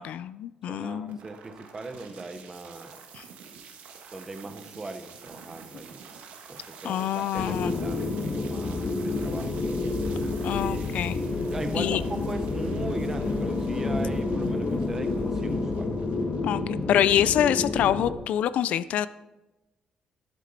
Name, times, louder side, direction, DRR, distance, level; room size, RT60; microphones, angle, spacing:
voice 1, 0.0-1.2 3.1-3.2 6.8-7.8 10.4-11.2 11.7-12.0 16.4-19.1, left 11 dB, 70° left, 16 dB, 0.3 m, -26 dB
voice 2, 0.7-3.0 4.1-6.1 6.5-9.6 10.5-10.9 11.5-15.9, right 2 dB, 15° right, 8 dB, 0.8 m, -39 dB
sound 1, 1.1-17.1, right 6 dB, 85° right, 1.5 m, -48 dB
sound 2, 7.4-18.1, left 3 dB, 35° left, 1.0 m, -29 dB
11.5 x 8.3 x 4.1 m, 1.1 s
cardioid pair, 175°, 2 cm